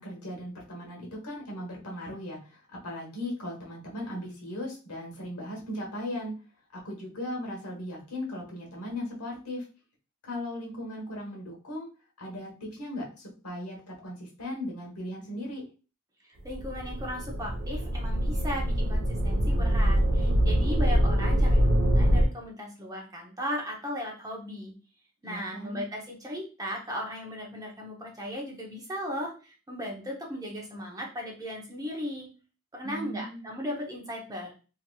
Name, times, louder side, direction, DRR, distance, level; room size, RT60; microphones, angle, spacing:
voice 1, 0.0-6.3 6.7-9.6 10.2-11.9 12.2-15.7 25.2-25.8 32.8-33.5, left 1 dB, 85° left, -1 dB, 1.2 m, -37 dB
voice 2, 16.2-24.7 25.2-32.3 32.7-34.5, equal, 15° right, -1 dB, 0.7 m, -37 dB
sound 1, 16.5-22.2, equal, 60° right, 0.7 m, -24 dB
2.9 x 2.9 x 2.2 m, 0.35 s
head